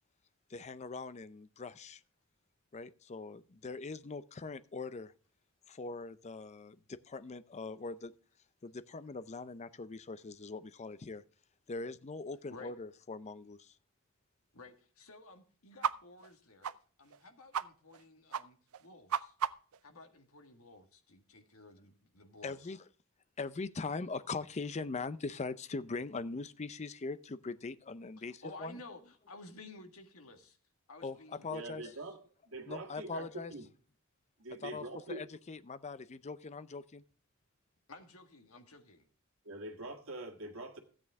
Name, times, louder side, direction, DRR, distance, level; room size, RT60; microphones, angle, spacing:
voice 1, 0.5-2.0 2.7-5.1 5.7-8.1 8.6-11.2 11.7-13.8 22.4-22.8 23.4-28.8 31.0-31.2 31.4-31.9 32.7-33.5 34.6-37.0, left 3 dB, 30° left, 15 dB, 0.5 m, -41 dB
voice 2, 14.5-16.7 17.0-19.4 19.8-22.7 28.2-30.6 30.9-32.2 37.9-39.1, left 2 dB, 80° left, 6 dB, 1.8 m, -54 dB
sound 1, 15.8-15.9 16.2-16.3 16.6-16.7 17.1-17.2 17.5-17.7 17.9-18.0 18.3-18.4 18.7-19.8, right 8 dB, 80° right, 0.5 m, -34 dB
voice 3, 31.5-33.6 34.4-35.3 39.5-40.8, right 2 dB, 65° right, 1 dB, 1.7 m, -44 dB
14.0 x 8.6 x 3.5 m, 0.42 s
head